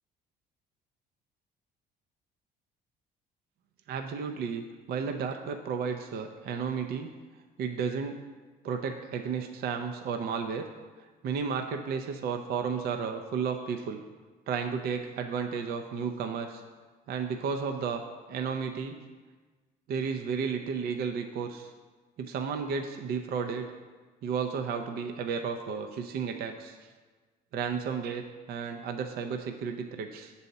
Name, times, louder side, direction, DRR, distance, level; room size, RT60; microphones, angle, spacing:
voice 1, 3.9-7.1 7.6-8.2 8.6-10.7 11.2-14.0 14.5-16.6 17.1-18.0 18.3-19.0 19.9-21.7 22.2-23.7 24.2-26.8 27.5-30.3, right 6 dB, 65° right, 4 dB, 0.6 m, -33 dB
7.1 x 4.1 x 6.7 m, 1.4 s
cardioid pair, 110°, 17 cm